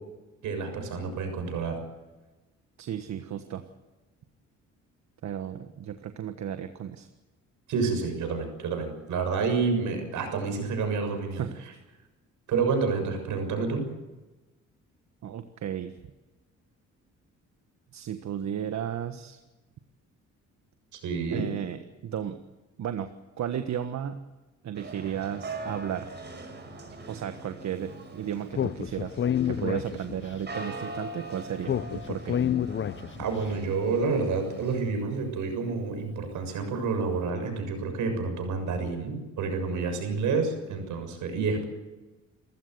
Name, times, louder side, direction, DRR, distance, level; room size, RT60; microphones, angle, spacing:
voice 1, 0.4-1.8 7.7-11.4 12.5-13.9 20.9-21.5 33.2-41.6, right 4 dB, 80° right, 6 dB, 6.9 m, -29 dB
voice 2, 2.8-3.6 5.2-7.1 11.3-11.6 15.2-15.9 17.9-19.4 21.3-22.4 22.8-23.1 23.4-24.2 24.6-26.1 27.1-32.4, right 9 dB, 65° right, 8 dB, 1.5 m, -34 dB
sound 1, 24.7-34.8, right 2 dB, 35° right, 5.8 m, -42 dB
Speech, 28.5-30.4 31.6-33.4, left 9 dB, 40° left, 0.7 m, -29 dB
28.0 x 15.0 x 8.0 m, 1.1 s
cardioid pair, 90°, 30 cm